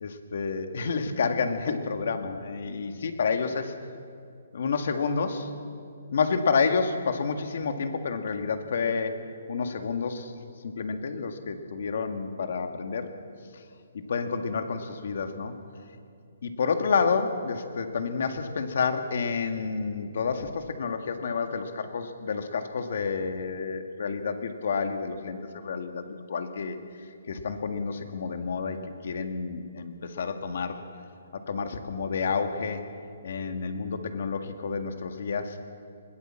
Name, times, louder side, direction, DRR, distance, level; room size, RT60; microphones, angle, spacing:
voice 1, 0.0-3.7 4.5-5.5 6.1-9.1 9.5-10.3 10.6-13.1 14.1-15.6 16.4-26.8 27.3-28.8 29.0-30.8 31.5-32.8 33.2-35.6, left 5 dB, 55° left, 7 dB, 1.8 m, -29 dB
21.0 x 17.0 x 7.5 m, 2.4 s
hypercardioid pair, 170°, 0 cm